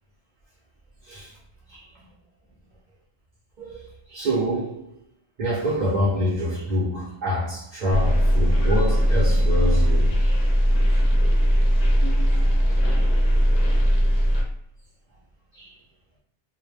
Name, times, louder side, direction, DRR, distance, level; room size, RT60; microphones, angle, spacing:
voice 1, 1.7-2.0 3.6-4.9 5.4-10.4 12.8-13.0 15.5-15.8, equal, 50° right, 0.7 m, -26 dB
sound 1, 7.9-14.4, equal, 50° left, 0.6 m, -19 dB
2.1 x 2.1 x 3.2 m
omnidirectional pair, 1.0 m